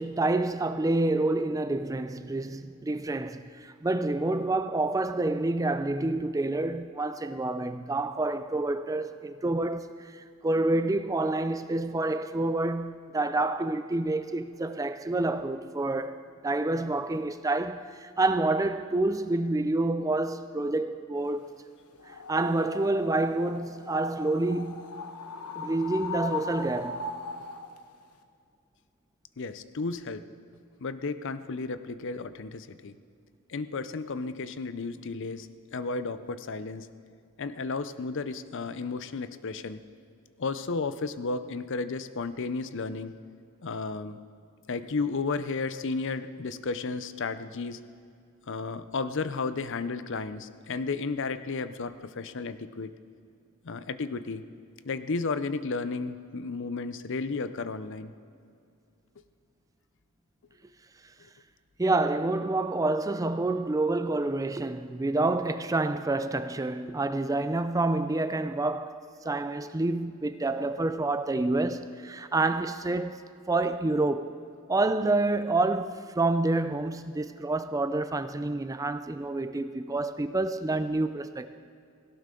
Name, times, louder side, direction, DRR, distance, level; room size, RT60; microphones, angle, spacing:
voice 1, 0.0-21.5 22.3-24.8 25.6-27.0 61.8-73.2 73.5-74.3 74.7-81.5, right 2 dB, 15° right, 0.4 m, -28 dB
sound 1, 22.0-27.8, left 4 dB, 85° left, 1.1 m, -38 dB
voice 2, 29.4-30.3 30.8-33.0 33.5-36.9 37.4-39.8 40.4-43.1 43.6-44.2 44.7-47.8 48.5-52.9 53.6-54.4 54.9-58.1, left 4 dB, 55° left, 0.6 m, -33 dB
17.5 x 16.5 x 3.8 m
head